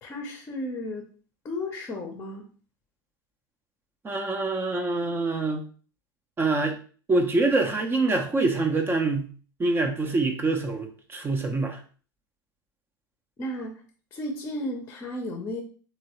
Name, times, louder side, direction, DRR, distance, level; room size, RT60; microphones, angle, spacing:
voice 1, 0.0-1.1 1.4-2.4 13.4-13.8 14.1-15.6, left 1 dB, 25° left, 3 dB, 0.7 m, -33 dB
voice 2, 4.0-5.6 6.4-6.8 7.1-9.3 9.6-11.8, right 3 dB, 20° right, 4 dB, 0.6 m, -25 dB
3.0 x 2.9 x 2.9 m, 0.40 s
figure-of-eight pair, 85°, 12 cm